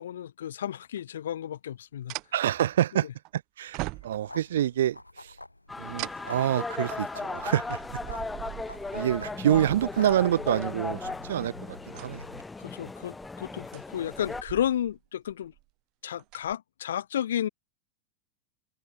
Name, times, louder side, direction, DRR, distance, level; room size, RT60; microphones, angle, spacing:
voice 1, 0.0-2.1 12.6-15.5 16.0-17.5, left 10 dB, 60° left, 2.9 m, -32 dB
sound 1, 1.0-1.1 2.1-3.3 3.7-4.5 6.0-10.7 11.3-11.5 11.8-12.6 13.2-15.0 15.3-15.6 16.1-16.5, right 24 dB, 40° right, 4.8 m, -42 dB
voice 2, 2.3-3.1 3.3-5.3 5.8-7.8 8.9-12.2, right 11 dB, 60° right, 2.0 m, -27 dB
sound 2, 3.7-12.4, left 2 dB, 85° left, 4.0 m, -47 dB
sound 3, 5.7-14.4, left 3 dB, 10° left, 3.6 m, -37 dB
figure-of-eight pair, 90°, 0 cm